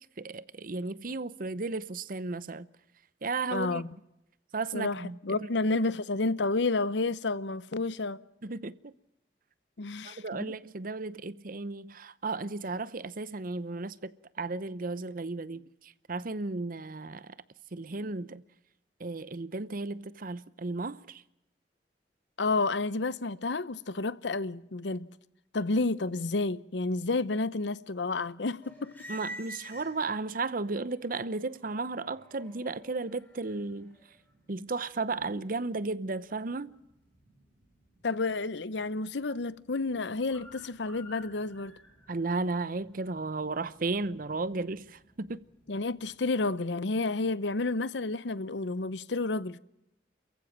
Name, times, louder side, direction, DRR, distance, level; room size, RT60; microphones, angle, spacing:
voice 1, 0.2-2.7 3.2-3.8 4.5-5.2 8.4-8.9 10.0-14.1 14.4-17.3 17.7-18.4 19.0-21.2 29.1-34.0 34.5-36.7 42.1-45.4, right 3 dB, 50° right, 0.8 m, -34 dB
voice 2, 3.5-4.0 4.7-8.2 9.8-10.5 22.4-25.1 25.5-28.9 38.0-41.7 45.7-49.6, left 3 dB, 75° left, 0.8 m, -30 dB
sound 1, 28.6-30.3 30.9-46.7, equal, 10° left, 7.4 m, -52 dB
28.5 x 15.0 x 7.4 m
head